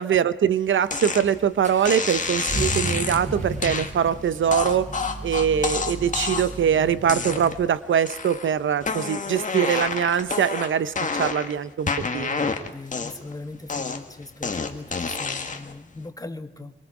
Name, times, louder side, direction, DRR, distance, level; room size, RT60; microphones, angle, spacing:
voice 1, 0.0-4.9 5.2-12.4, right 8 dB, 85° right, 14 dB, 0.8 m, -23 dB
sound 1, 0.9-1.3 1.8-3.2 3.6-3.9 4.5-6.6 7.0-7.7 8.1-8.5 8.8-11.5 11.9-13.3 13.7-15.7, left 4 dB, 40° left, 1.7 m, -28 dB
Accelerating revving vroom, 1.0-7.6, right 1 dB, 40° right, 4.9 m, -34 dB
voice 2, 12.6-16.7, left 2 dB, 20° left, 9 dB, 1.3 m, -39 dB
26.5 x 23.5 x 5.0 m, 0.83 s
wide cardioid pair, 105°, 20 cm